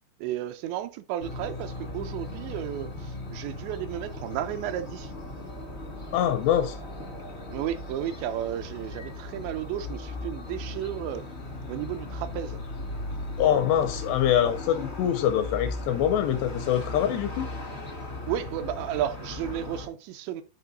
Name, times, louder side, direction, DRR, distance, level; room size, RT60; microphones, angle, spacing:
voice 1, 0.2-5.1 7.5-11.2 11.7-12.6 18.3-20.4, right 11 dB, 80° right, 2.7 m, -33 dB
sound 1, 1.2-19.9, left 2 dB, 60° left, 0.6 m, -37 dB
voice 2, 6.1-6.8 13.4-17.5, left 10 dB, 80° left, 2.5 m, -24 dB
10.0 x 4.5 x 4.0 m
omnidirectional pair, 5.4 m